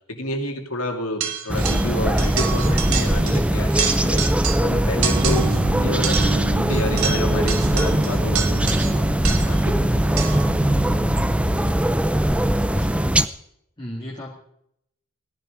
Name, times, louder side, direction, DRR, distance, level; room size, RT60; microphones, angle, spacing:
voice 1, 0.1-4.2 4.6-10.2 10.5-10.8, left 1 dB, 85° left, 3 dB, 2.4 m, -30 dB
sound 1, 1.2-1.9 2.2-3.4 3.7-4.7 5.0-5.6 6.0-9.7 10.2-10.5, right 8 dB, 75° right, 1.5 m, -28 dB
sound 2, 1.5-13.3, right 1 dB, 5° right, 0.5 m, -20 dB
sound 3, 5.1-11.8, right 3 dB, 55° right, 0.7 m, -31 dB
voice 2, 12.6-13.2 13.8-14.3, left 1 dB, 20° left, -3 dB, 2.0 m, -35 dB
17.0 x 11.0 x 5.1 m, 0.74 s
head